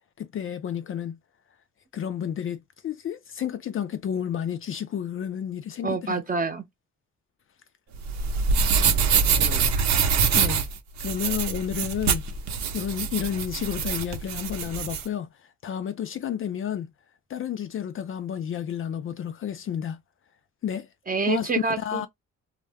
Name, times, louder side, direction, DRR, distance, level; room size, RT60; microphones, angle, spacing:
voice 1, 0.2-1.2 1.9-6.2 10.3-10.7 11.0-12.2 12.7-15.3 15.6-16.9 17.3-20.0 20.6-20.9 21.3-22.1, left 9 dB, 45° left, 0.4 m, -31 dB
voice 2, 5.8-6.6 9.4-9.8 21.1-22.1, right 4 dB, 30° right, 0.8 m, -28 dB
sound 1, 7.9-15.0, right 6 dB, 65° right, 0.7 m, -24 dB
2.2 x 2.0 x 3.4 m
cardioid pair, 90°, 30 cm